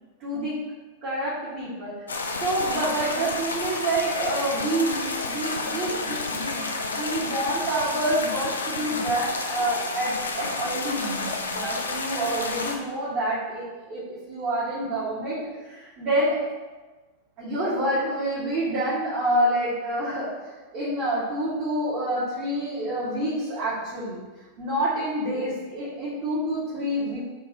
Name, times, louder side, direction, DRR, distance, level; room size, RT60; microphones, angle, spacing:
voice 1, 0.2-0.6 1.0-2.0 2.4-15.4 15.7-16.4 17.4-24.2 24.6-27.2, right 1 dB, 40° right, -11 dB, 1.2 m, -28 dB
sound 1, 2.1-12.8, left 3 dB, 75° left, 0.4 m, -30 dB
4.7 x 2.9 x 2.6 m, 1.2 s
figure-of-eight pair, 90°, 0 cm